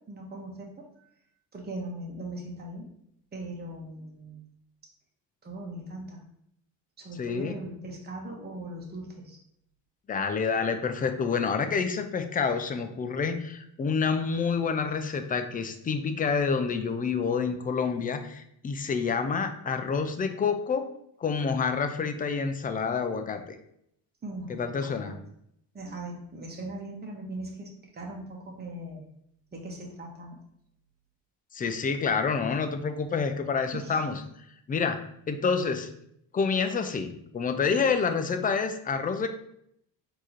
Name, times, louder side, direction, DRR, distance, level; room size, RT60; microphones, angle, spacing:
voice 1, 0.1-0.9 1.5-2.9 3.3-4.4 5.4-6.2 7.0-9.4 24.2-25.1 25.7-29.0 29.5-30.4 33.7-34.0, right 1 dB, 25° right, 0 dB, 1.1 m, -39 dB
voice 2, 7.2-7.5 10.1-20.9 21.2-23.4 24.5-25.1 31.5-34.2 34.7-35.0 35.3-35.9 36.3-39.3, left 5 dB, 20° left, 8 dB, 0.4 m, -28 dB
4.6 x 2.9 x 3.0 m, 0.72 s
supercardioid pair, 90°, 39 cm